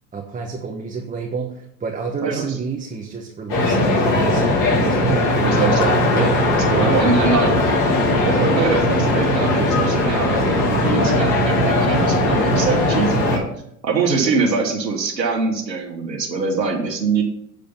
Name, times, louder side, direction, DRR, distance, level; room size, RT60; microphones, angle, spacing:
voice 1, 0.1-5.9 6.7-7.1, right 5 dB, 15° right, 1 dB, 1.2 m, -30 dB
sound 1, 3.5-13.4, left 1 dB, 40° left, 4.4 m, -18 dB
voice 2, 5.4-7.6 8.2-13.4 13.8-17.2, right 4 dB, 85° right, 0 dB, 1.9 m, -23 dB
8.5 x 5.1 x 7.3 m, 0.74 s
hypercardioid pair, 85°, 50 cm